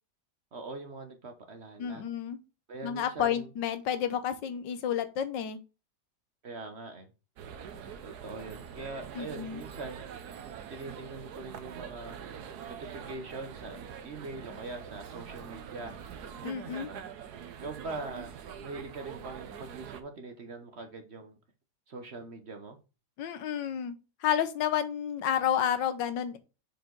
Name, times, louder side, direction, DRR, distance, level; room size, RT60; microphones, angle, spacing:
voice 1, 0.5-2.0 2.7-3.5 6.4-7.1 8.0-10.1 10.7-12.2 12.7-13.8 14.0-16.0 16.6-17.0 17.6-18.4 18.6-21.4 21.9-22.8, right 3 dB, 45° right, 6 dB, 1.0 m, -42 dB
voice 2, 1.8-2.4 2.8-5.6 9.1-9.6 16.4-16.9 23.2-23.9 24.2-26.4, left 9 dB, 85° left, 11 dB, 1.6 m, -30 dB
sound 1, 7.4-20.0, right 8 dB, 65° right, 1.3 m, -44 dB
7.0 x 4.9 x 3.8 m, 0.31 s
omnidirectional pair, 1.9 m